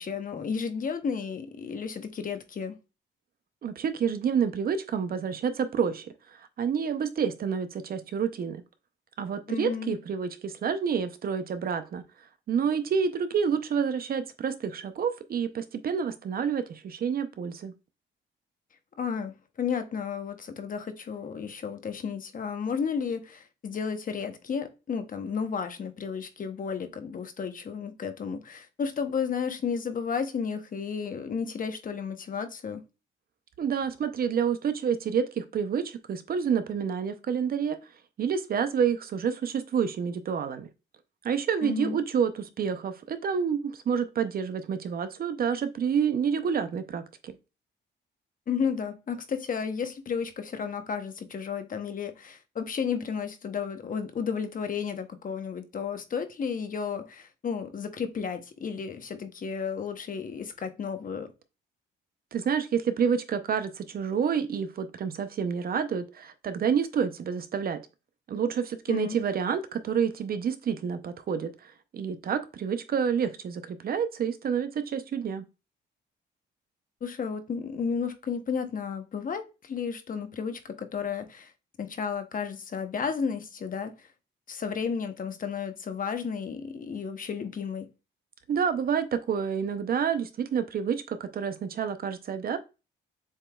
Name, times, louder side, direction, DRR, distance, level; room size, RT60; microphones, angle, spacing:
voice 1, 0.0-2.7 9.5-9.9 19.0-32.8 41.6-42.0 48.5-61.3 68.9-69.2 77.0-81.5 81.8-84.1 84.5-87.9, left 6 dB, 45° left, 0.8 m, -33 dB
voice 2, 3.6-8.6 9.2-12.0 12.5-17.7 33.6-37.8 38.2-40.7 41.2-47.3 62.3-67.8 68.3-75.4 88.5-92.6, right 7 dB, 50° right, 0.6 m, -28 dB
7.2 x 3.0 x 2.3 m
cardioid pair, 90°, 20 cm